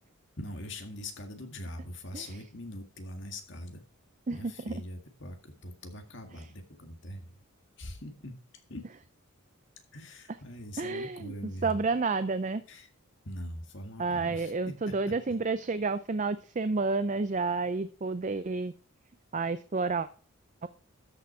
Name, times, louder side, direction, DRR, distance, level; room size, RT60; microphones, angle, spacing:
voice 1, 0.4-3.8 4.3-7.4 7.8-8.3 8.7-8.9 9.9-12.0 12.7-12.9 13.2-15.4, left 1 dB, 55° left, 5 dB, 1.9 m, -42 dB
voice 2, 10.8-11.3 11.6-12.6 14.0-18.7 19.3-20.1 20.6-20.7, right 4 dB, 35° right, 12 dB, 0.4 m, -30 dB
13.5 x 6.1 x 4.4 m, 0.40 s
head